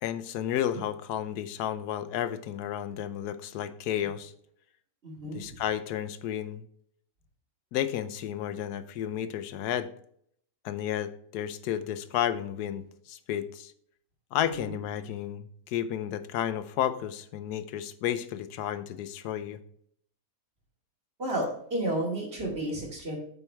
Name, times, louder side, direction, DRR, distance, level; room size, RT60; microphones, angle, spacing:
voice 1, 0.0-4.3 5.3-6.6 7.7-9.9 10.6-13.7 14.3-19.6, left 10 dB, 85° left, 12 dB, 1.1 m, -32 dB
voice 2, 5.0-5.5 14.5-14.7 21.2-23.2, right 1 dB, 40° right, -2 dB, 2.6 m, -32 dB
8.4 x 4.7 x 4.5 m, 0.65 s
omnidirectional pair, 1.7 m